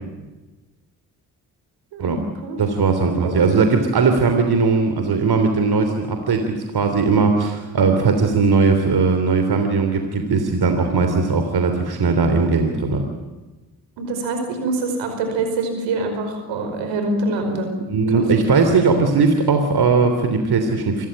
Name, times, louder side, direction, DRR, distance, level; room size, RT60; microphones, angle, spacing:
voice 1, 1.9-2.6 3.1-3.3 14.0-17.8 18.1-18.2, right 2 dB, 80° right, 6 dB, 5.2 m, -25 dB
voice 2, 2.6-13.0 17.9-21.1, right 4 dB, 55° right, 5 dB, 3.3 m, -18 dB
26.5 x 14.5 x 9.1 m, 1.2 s
hypercardioid pair, 45°, 44 cm